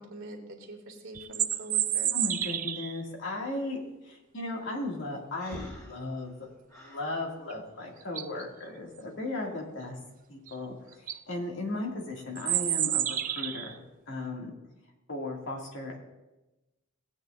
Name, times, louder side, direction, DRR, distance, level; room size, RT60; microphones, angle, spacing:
voice 1, 0.0-2.1, right 1 dB, 75° right, 0 dB, 2.2 m, -44 dB
sound 1, 1.1-3.0 7.5-7.6 8.0-8.4 10.5-10.6 10.9-11.2 12.4-13.7, right 11 dB, 40° right, 0.5 m, -29 dB
voice 2, 2.1-10.0 10.3-13.8 14.1-14.5 15.1-16.0, left 2 dB, 60° left, -1 dB, 2.2 m, -36 dB
Breathing, 5.4-7.1, equal, 20° left, 3.0 m, -46 dB
18.0 x 8.9 x 2.5 m, 1.0 s
head